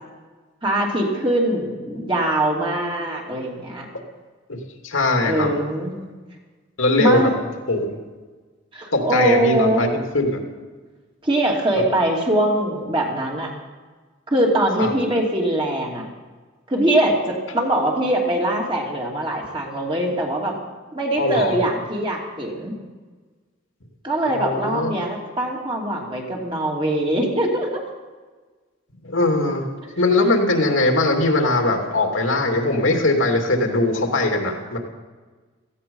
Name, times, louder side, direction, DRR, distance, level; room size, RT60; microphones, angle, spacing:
voice 1, 0.6-3.9 5.2-5.9 7.0-7.3 8.7-9.8 11.2-13.5 14.3-16.1 16.7-20.6 20.9-22.7 24.0-27.8, right 1 dB, 25° right, -2 dB, 2.8 m, -22 dB
voice 2, 4.5-5.5 6.8-7.3 7.7-8.0 8.9-9.9 10.1-10.4 14.8-14.9 21.2-21.6 24.2-24.9 29.0-29.7 30.0-34.8, left 2 dB, 85° left, 2 dB, 2.7 m, -20 dB
17.0 x 15.5 x 5.5 m, 1.4 s
head